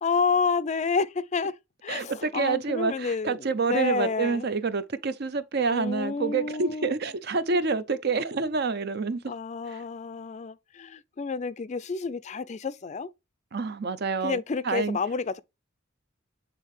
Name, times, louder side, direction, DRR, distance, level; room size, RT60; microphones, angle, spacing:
voice 1, 0.0-1.5 1.8-4.5 5.7-7.0 9.3-13.1 14.2-15.4, left 5 dB, 35° left, 0.4 m, -29 dB
voice 2, 1.9-9.3 9.7-9.8 13.5-15.0, right 4 dB, 55° right, 0.6 m, -28 dB
8.5 x 3.6 x 3.2 m
head